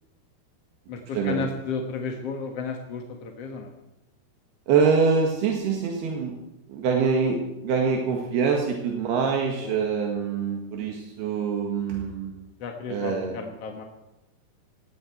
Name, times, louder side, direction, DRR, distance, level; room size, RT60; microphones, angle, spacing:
voice 1, 0.9-3.7 9.6-10.3 12.6-13.8, left 4 dB, 55° left, 3 dB, 1.9 m, -33 dB
voice 2, 4.7-6.4 6.7-12.3 12.9-13.3, right 5 dB, 80° right, 1 dB, 3.8 m, -24 dB
19.0 x 16.5 x 4.5 m, 0.96 s
omnidirectional pair, 4.6 m